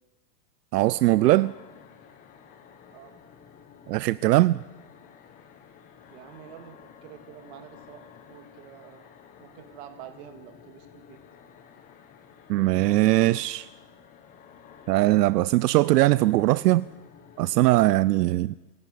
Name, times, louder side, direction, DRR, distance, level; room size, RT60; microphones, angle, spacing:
voice 1, 0.7-1.5 3.9-4.6 12.5-13.7 14.9-16.8 17.4-18.5, right 17 dB, 80° right, 0.6 m, -20 dB
sound 1, 0.8-17.9, left 7 dB, 15° left, 1.2 m, -52 dB
voice 2, 6.1-9.1 9.4-11.2, right 10 dB, 40° right, 2.3 m, -47 dB
25.5 x 11.5 x 9.3 m
supercardioid pair, 175°, 48 cm